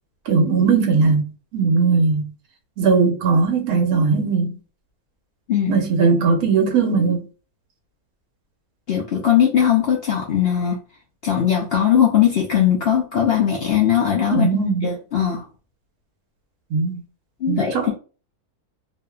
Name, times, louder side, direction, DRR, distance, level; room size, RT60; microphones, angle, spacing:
voice 1, 0.3-1.2 1.5-2.3 2.8-4.5 5.7-7.2 14.3-14.9 16.7-17.0 17.5-17.9, right 4 dB, 75° right, 1.2 m, -18 dB
voice 2, 8.9-10.8 11.2-14.5 14.8-15.4 17.4-17.9, left 9 dB, 70° left, 0.5 m, -19 dB
2.7 x 2.4 x 2.2 m
omnidirectional pair, 1.6 m